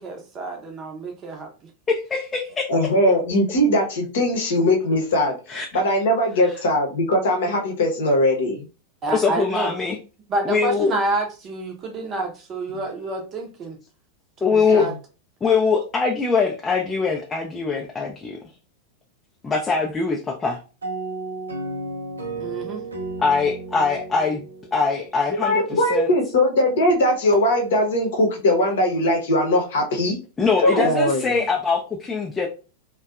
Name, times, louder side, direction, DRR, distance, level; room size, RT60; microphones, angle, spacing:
voice 1, 0.0-1.5 9.0-9.7 10.3-13.8 14.4-14.9 22.4-22.9, right 2 dB, 30° right, 3 dB, 0.6 m, -28 dB
voice 2, 1.9-2.7 5.5-5.7 6.4-6.6 9.1-10.0 10.4-10.9 14.4-14.9 15.4-18.4 19.4-20.6 23.2-26.1 30.4-32.5, left 5 dB, 15° left, 0 dB, 0.4 m, -22 dB
voice 3, 2.7-8.7 14.7-14.8 25.4-30.2 30.6-31.4, left 1 dB, 60° left, 1 dB, 0.7 m, -20 dB
sound 1, 20.8-25.5, right 2 dB, 75° right, 0.6 m, -33 dB
2.6 x 2.2 x 2.3 m, 0.34 s
figure-of-eight pair, 90°, 0 cm